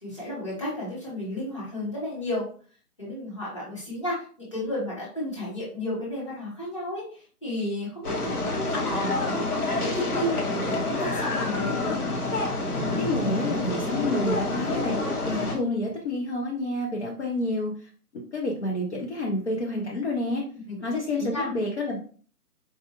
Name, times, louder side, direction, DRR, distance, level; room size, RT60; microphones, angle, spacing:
voice 1, 0.0-2.5 3.0-9.4 9.7-12.0 20.7-21.5, left 1 dB, 20° left, -7 dB, 1.1 m, -33 dB
sound 1, 8.0-15.6, left 2 dB, 75° left, 1.3 m, -28 dB
voice 2, 13.0-15.0 15.3-20.4 20.8-22.0, left 1 dB, 45° left, -2 dB, 0.7 m, -29 dB
4.6 x 2.3 x 2.9 m, 0.42 s
hypercardioid pair, 170°, 46 cm